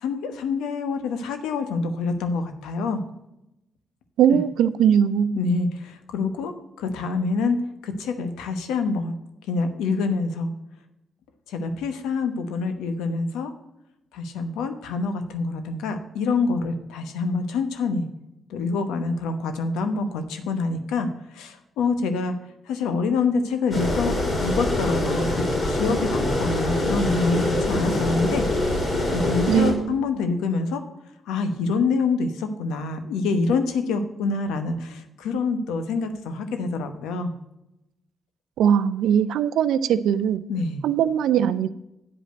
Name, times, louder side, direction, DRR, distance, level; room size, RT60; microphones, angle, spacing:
voice 1, 0.0-3.0 4.3-4.4 5.4-7.6 7.8-9.1 9.5-10.5 11.5-13.5 14.1-18.0 18.5-22.3 22.7-24.1 24.4-28.4 29.1-30.8 31.3-37.3 40.5-40.8, left 4 dB, 85° left, 8 dB, 0.9 m, -26 dB
voice 2, 4.2-5.5 29.5-30.1 38.6-40.4 40.8-41.7, right 9 dB, 80° right, 15 dB, 0.4 m, -20 dB
sound 1, 23.7-29.7, left 1 dB, 50° left, 3.9 m, -24 dB
8.5 x 5.1 x 7.7 m, 0.89 s
supercardioid pair, 55°, 0 cm